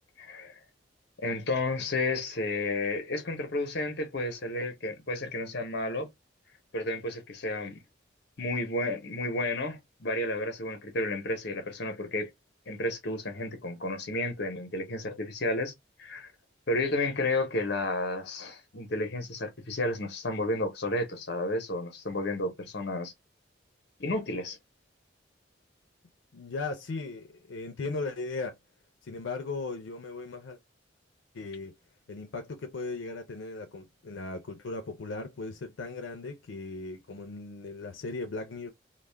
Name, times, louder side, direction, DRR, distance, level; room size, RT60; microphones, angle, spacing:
voice 1, 0.2-0.5 1.2-6.1 6.7-7.8 8.4-12.3 12.7-15.7 16.0-16.3 16.7-23.1 24.0-24.6, left 2 dB, 60° left, 0.8 m, -32 dB
voice 2, 26.3-28.6 29.0-30.6 31.3-31.8 32.1-38.7, left 3 dB, 90° left, 0.5 m, -37 dB
2.3 x 2.1 x 3.2 m
head